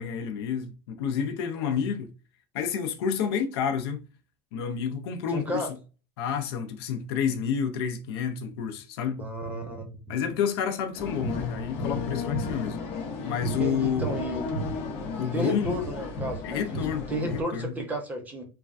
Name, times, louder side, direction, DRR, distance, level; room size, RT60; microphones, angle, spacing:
voice 1, 0.0-2.1 2.5-4.0 4.5-5.7 6.2-9.3 10.1-12.8 13.2-14.2 15.2-15.8 16.4-17.7, left 7 dB, 70° left, 0.6 m, -29 dB
voice 2, 5.3-5.7 9.2-9.9 13.5-14.5 15.3-16.8 17.1-18.5, right 1 dB, 10° right, 0.6 m, -32 dB
sound 1, 11.0-17.4, left 2 dB, 45° left, 0.8 m, -33 dB
3.2 x 2.2 x 2.5 m
supercardioid pair, 150°, 14 cm